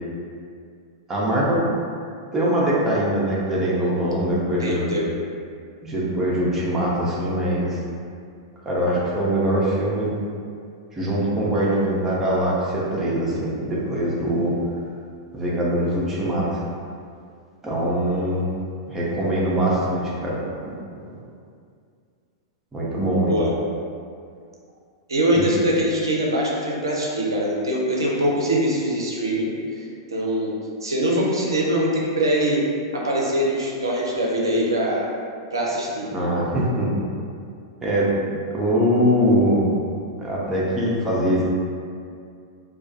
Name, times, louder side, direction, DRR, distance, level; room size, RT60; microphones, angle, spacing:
voice 1, 1.1-1.6 2.3-5.0 5.8-7.8 8.7-10.1 10.9-14.6 15.3-16.6 17.6-18.4 18.9-20.4 22.7-23.3 25.3-25.4 36.1-36.9 37.8-38.1 38.5-39.6 40.2-41.4, right 1 dB, 15° right, -6 dB, 0.6 m, -22 dB
voice 2, 4.6-5.0 23.3-23.5 25.1-29.5 29.8-30.5 30.8-32.6 32.9-35.0 35.5-36.1, right 1 dB, 75° right, -3 dB, 0.5 m, -23 dB
2.3 x 2.2 x 2.6 m, 2.3 s
figure-of-eight pair, 95°, 2 cm